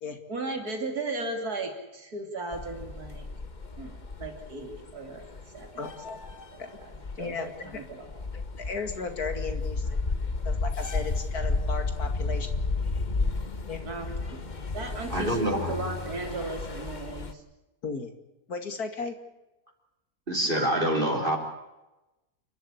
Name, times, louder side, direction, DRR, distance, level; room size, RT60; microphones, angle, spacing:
voice 1, 0.3-3.3 3.8-5.7 6.7-6.9 7.2-8.1 13.8-14.4 14.7-17.4, right 2 dB, 90° right, 4 dB, 3.4 m, -36 dB
sound 1, 2.5-17.3, left 3 dB, 30° left, 1.3 m, -33 dB
voice 2, 5.8-6.2 6.6-6.8 7.2-7.8 8.3-10.1 10.4-12.5 13.7-13.8 17.8-18.1 18.5-19.1, left 4 dB, 90° left, 6 dB, 2.9 m, -35 dB
voice 3, 15.1-15.7 20.3-21.4, right 1 dB, 35° right, 2 dB, 4.0 m, -26 dB
29.0 x 12.5 x 9.9 m, 1.0 s
omnidirectional pair, 1.6 m